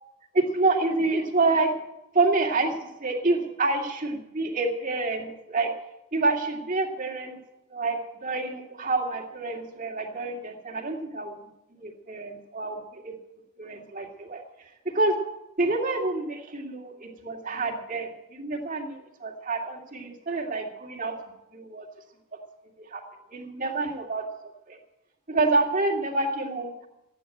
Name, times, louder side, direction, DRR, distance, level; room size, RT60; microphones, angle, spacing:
voice 1, 0.3-1.7 2.1-5.7 6.1-7.4 7.7-11.3 11.7-13.1 13.6-14.4 14.9-15.2 15.6-21.1 21.5-21.9 22.8-23.0 23.3-24.3 24.7-24.8 25.3-26.9, right 3 dB, 40° right, 1 dB, 2.2 m, -27 dB
14.0 x 9.3 x 8.9 m, 0.91 s
head